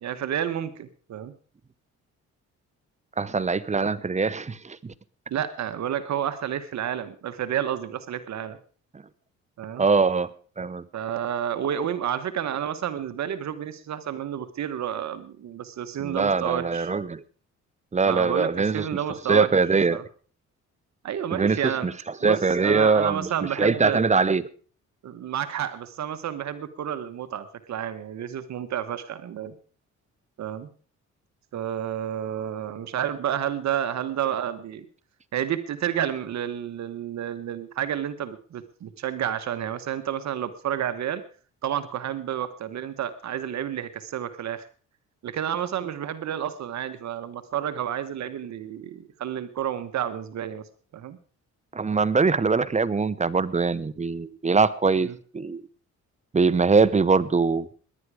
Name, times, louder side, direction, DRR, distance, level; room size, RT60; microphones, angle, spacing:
voice 1, 0.0-1.3 5.3-8.6 9.6-9.8 10.9-16.9 18.0-19.6 19.9-20.0 21.0-21.9 22.2-24.1 25.0-29.5 30.4-30.7 31.5-34.9 35.3-41.2 41.6-44.7 45.2-50.6 50.9-51.2 55.0-55.2, right 10 dB, 65° right, 11 dB, 1.3 m, -30 dB
voice 2, 3.2-4.9 9.8-10.3 10.6-10.8 16.0-17.2 17.9-18.8 19.3-20.0 21.3-21.9 22.2-23.3 23.6-24.4 51.7-55.1 55.3-55.6 56.3-57.7, right 4 dB, 25° right, 16 dB, 0.9 m, -22 dB
18.5 x 11.0 x 4.9 m, 0.42 s
cardioid pair, 90°, 30 cm